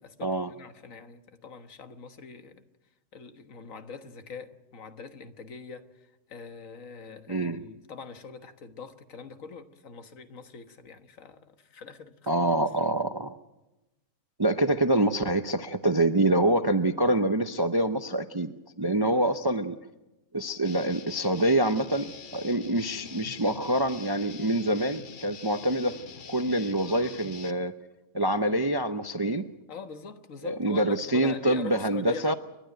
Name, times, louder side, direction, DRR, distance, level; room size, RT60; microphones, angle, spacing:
voice 1, 0.0-2.6 3.1-12.6 19.0-19.2 19.5-19.6 29.7-32.4, left 5 dB, 60° left, 8 dB, 1.7 m, -43 dB
voice 2, 7.3-7.6 12.3-13.4 14.4-18.5 18.8-19.8 20.3-26.0 26.3-27.7 28.1-29.5 30.4-32.3, right 1 dB, 30° right, 9 dB, 0.4 m, -26 dB
Guitar, 20.6-27.5, left 6 dB, 40° left, 0.8 m, -45 dB
29.5 x 12.5 x 9.2 m, 1.0 s
omnidirectional pair, 1.6 m